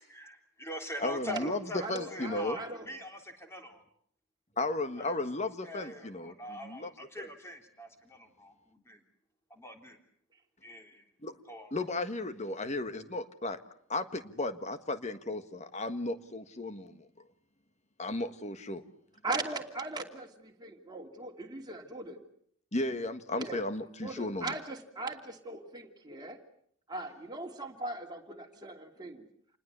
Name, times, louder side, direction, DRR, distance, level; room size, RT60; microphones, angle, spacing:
voice 1, 0.0-3.8 5.0-5.2 5.6-9.0 9.5-10.0 10.6-11.0 11.5-11.7, equal, 10° left, 4 dB, 3.5 m, -43 dB
voice 2, 1.0-1.6 1.9-2.6 4.6-6.9 7.2-7.3 11.2-11.3 11.7-13.6 13.9-17.1 18.0-18.8 22.7-24.5, left 2 dB, 30° left, 10 dB, 1.6 m, -35 dB
voice 3, 1.8-2.9 19.2-22.2 23.3-23.6 24.0-26.4 26.9-29.3, right 2 dB, 20° right, 2 dB, 2.8 m, -39 dB
28.0 x 20.5 x 8.1 m, 0.64 s
head